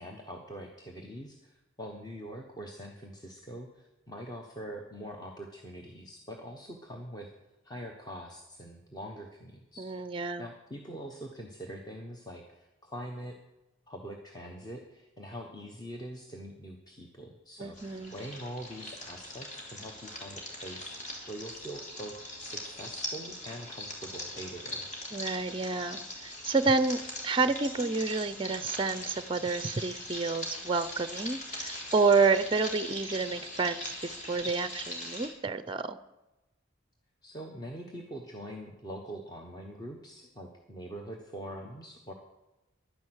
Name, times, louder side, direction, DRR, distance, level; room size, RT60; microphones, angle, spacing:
voice 1, 0.0-7.3 7.6-10.1 10.4-13.4 13.9-24.9 37.2-42.1, equal, 20° left, 1 dB, 1.1 m, -43 dB
voice 2, 9.8-10.4 17.6-18.2 25.1-36.0, right 4 dB, 25° right, 13 dB, 0.5 m, -29 dB
sound 1, 17.7-35.3, left 1 dB, 35° left, 3.3 m, -41 dB
11.5 x 10.5 x 8.0 m, 0.98 s
head